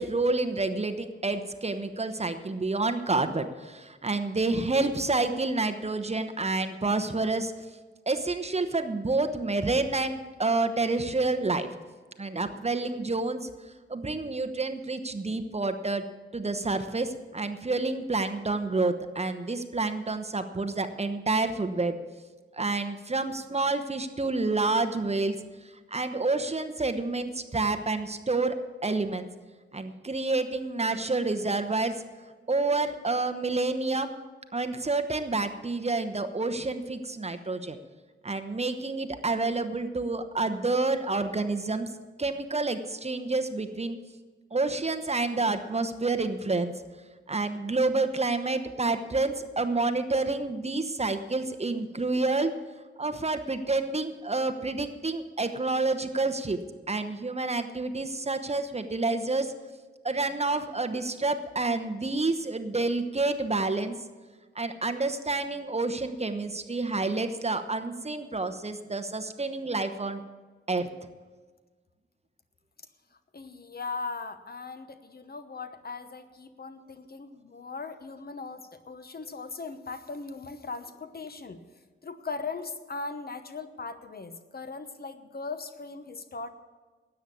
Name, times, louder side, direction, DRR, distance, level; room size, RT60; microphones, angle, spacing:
voice 1, 0.0-7.5 8.1-11.7 12.2-13.5 13.9-16.1 16.3-22.0 22.5-25.4 25.6-28.6 28.8-29.3 29.7-32.0 32.5-34.1 34.5-37.8 38.2-41.9 42.2-44.0 44.5-46.7 47.3-52.5 53.0-56.6 56.9-59.5 60.0-64.0 64.5-70.2 70.7-70.9, right 3 dB, 30° right, 8 dB, 1.0 m, -28 dB
voice 2, 73.3-81.6 82.0-86.5, left 4 dB, 45° left, 10 dB, 1.0 m, -39 dB
13.0 x 9.2 x 7.0 m, 1.4 s
wide cardioid pair, 85°, 21 cm